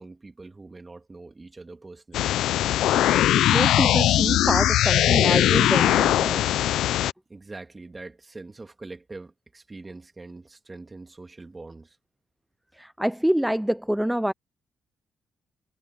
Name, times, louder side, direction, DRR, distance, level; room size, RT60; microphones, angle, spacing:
voice 1, 0.0-2.4 7.3-12.0, right 3 dB, 25° right, 2.3 m, -43 dB
sound 1, 2.1-7.1, left 13 dB, 80° left, 0.4 m, -20 dB
voice 2, 3.4-6.6 12.7-14.3, equal, 5° right, 0.4 m, -26 dB
cardioid pair, 90°, 0 cm